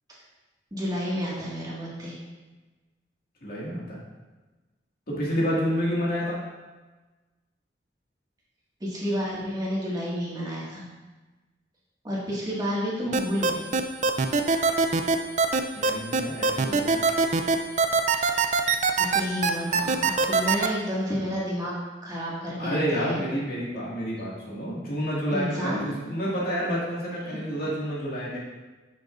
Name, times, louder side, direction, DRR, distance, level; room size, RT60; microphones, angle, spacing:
voice 1, 0.7-2.1 8.8-10.8 12.0-13.8 18.2-18.7 19.0-21.7 22.0-23.2 25.3-25.9 27.3-27.4, equal, 25° right, -7 dB, 1.9 m, -30 dB
voice 2, 3.4-4.0 5.1-6.4 15.7-17.0 22.6-28.4, equal, 60° left, -6 dB, 2.1 m, -29 dB
sound 1, 13.1-20.7, right 4 dB, 45° right, 0.5 m, -22 dB
9.7 x 6.3 x 2.6 m, 1.2 s
head